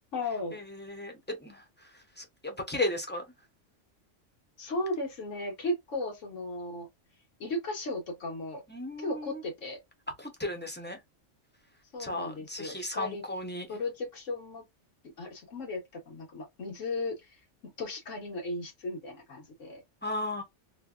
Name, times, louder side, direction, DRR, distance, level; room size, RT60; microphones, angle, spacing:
voice 1, 0.1-0.6 4.6-6.9 7.4-8.6 9.0-9.8 11.9-13.2 13.7-14.6 15.2-19.8, left 2 dB, 85° left, 1.6 m, -36 dB
voice 2, 2.4-3.2 8.7-9.3 10.4-11.0 12.0-13.7 20.0-20.4, left 2 dB, 10° left, 0.5 m, -34 dB
3.2 x 2.2 x 2.3 m
omnidirectional pair, 1.3 m